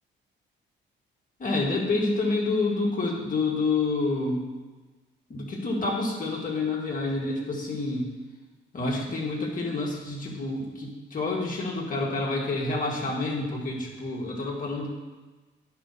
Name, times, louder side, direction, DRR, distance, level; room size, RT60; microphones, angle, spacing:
voice 1, 1.4-4.5 5.3-8.0 8.7-14.9, left 3 dB, 45° left, -3 dB, 2.2 m, -28 dB
10.5 x 5.6 x 4.2 m, 1.3 s
cardioid pair, 90°, 20 cm